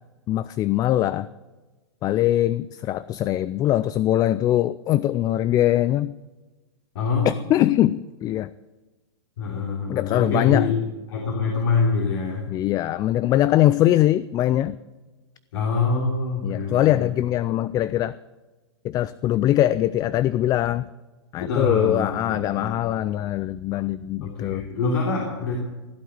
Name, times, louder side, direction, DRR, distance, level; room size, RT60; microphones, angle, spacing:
voice 1, 0.3-1.3 2.0-6.2 7.2-8.5 9.9-10.7 12.5-14.8 16.4-18.2 18.8-20.9 21.3-24.7, left 13 dB, 25° left, 17 dB, 0.4 m, -22 dB
voice 2, 6.9-7.5 9.4-10.8 11.1-12.5 15.5-17.1 21.4-23.1 24.2-25.6, left 4 dB, 65° left, -1 dB, 3.3 m, -25 dB
16.0 x 8.4 x 8.2 m, 1.2 s
hypercardioid pair, 110°, 14 cm